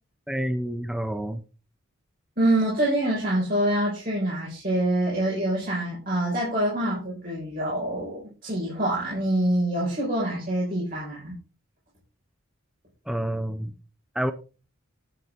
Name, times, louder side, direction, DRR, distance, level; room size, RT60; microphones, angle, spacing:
voice 1, 0.3-1.4 13.1-13.7 14.2-14.3, right 1 dB, 5° right, 0.6 m, -28 dB
voice 2, 2.4-11.4, right 1 dB, 45° right, 4.9 m, -25 dB
10.5 x 9.4 x 3.6 m
head